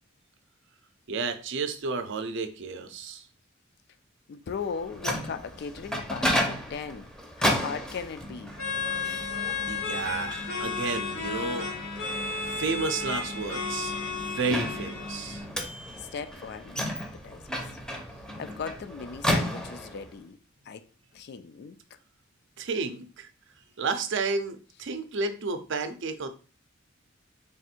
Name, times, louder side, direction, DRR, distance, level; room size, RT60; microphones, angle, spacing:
voice 1, 1.1-3.3 9.7-11.7 12.5-13.9 14.3-15.4 22.6-23.3 23.8-26.3, right 4 dB, 65° right, 0.5 m, -31 dB
voice 2, 4.3-7.1 7.4-8.5 16.0-17.4 18.4-20.4 20.7-20.8 21.1-21.8, left 6 dB, 55° left, 0.3 m, -38 dB
Microwave oven, 4.6-20.1, equal, 5° left, 0.6 m, -33 dB
sound 1, 8.6-15.4, left 5 dB, 90° left, 1.2 m, -33 dB
3.5 x 2.5 x 4.2 m
head